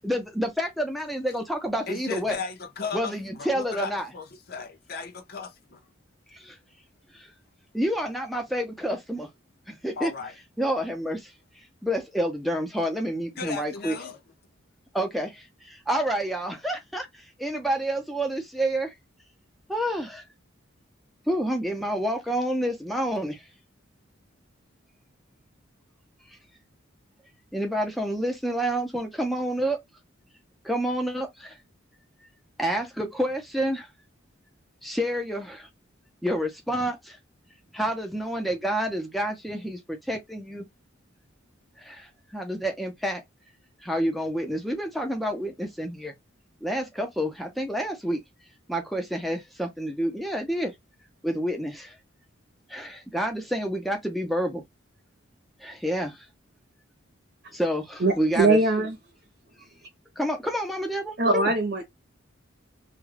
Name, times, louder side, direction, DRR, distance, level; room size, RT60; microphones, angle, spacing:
voice 1, 0.0-2.4 2.9-4.1 6.3-6.6 7.1-7.3 7.7-9.3 9.7-10.1 10.6-11.3 11.8-14.0 14.9-18.9 19.7-20.2 21.3-23.4 27.5-29.8 30.6-31.6 32.6-33.9 34.8-35.7 36.2-37.2 37.7-40.7 41.8-43.2 43.8-46.1 46.6-48.2 48.7-50.7 51.2-51.9 52.7-54.6 55.6-56.3 57.5-58.6 60.2-61.5, equal, ahead, 0.6 m, -29 dB
voice 2, 1.9-5.8 10.0-10.3 13.4-14.2, left 4 dB, 50° left, 0.6 m, -36 dB
voice 3, 58.0-58.9 61.2-61.8, right 2 dB, 55° right, 0.8 m, -21 dB
2.3 x 2.2 x 3.2 m
head